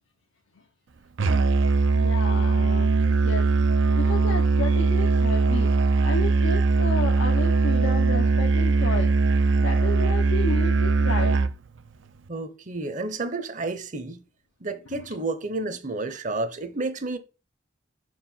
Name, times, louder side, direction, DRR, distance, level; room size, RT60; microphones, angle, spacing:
Musical instrument, 1.2-11.6, right 3 dB, 75° right, 0.5 m, -21 dB
voice 1, 1.9-3.5 3.9-9.2 9.6-11.4 14.9-15.0 16.1-16.2, left 3 dB, 90° left, 0.9 m, -32 dB
voice 2, 12.3-14.2 14.6-17.2, right 3 dB, 40° right, 0.8 m, -31 dB
5.9 x 4.7 x 5.5 m
head